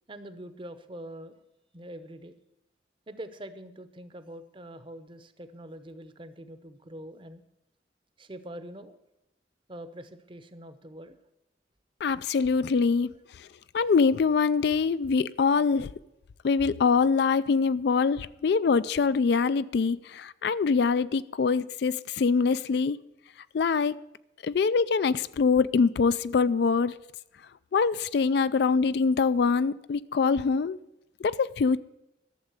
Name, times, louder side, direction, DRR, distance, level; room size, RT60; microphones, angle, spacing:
voice 1, 0.1-1.4 1.7-2.3 3.1-7.4 8.2-9.0 9.7-11.2, right 1 dB, 25° right, 0.7 m, -44 dB
voice 2, 12.0-13.1 13.4-13.5 13.7-15.9 16.4-23.0 23.5-24.0 24.4-26.9 27.7-30.8 31.2-31.8, left 5 dB, 55° left, 0.3 m, -24 dB
12.5 x 7.3 x 8.1 m
head